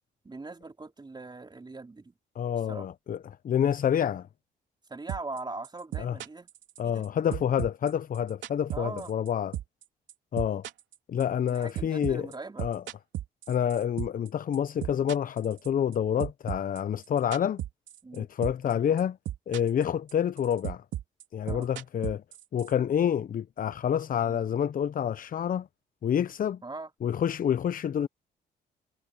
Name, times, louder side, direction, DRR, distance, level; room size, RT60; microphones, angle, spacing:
voice 1, 0.2-2.1 2.7-2.9 4.9-6.5 6.8-7.0 8.7-9.1 11.5-12.7 18.0-18.3 21.5-21.7 24.2-24.4 26.6-26.9, right 3 dB, 25° right, 4.2 m, -40 dB
voice 2, 2.4-4.3 6.0-6.2 6.8-9.5 10.3-10.7 11.1-12.3 12.6-12.8 13.5-17.6 18.1-19.2 19.5-20.8 21.3-22.2 22.5-25.7 26.0-26.6 27.0-28.1, left 9 dB, 50° left, 0.6 m, -28 dB
sound 1, 5.1-5.4 5.6-7.1 7.3-9.3 9.5-9.8 10.1-14.3 14.5-15.9 16.2-18.2 18.4-18.7 19.0-19.8 20.1-22.7, right 12 dB, 85° right, 3.4 m, -35 dB
cardioid pair, 80°, 19 cm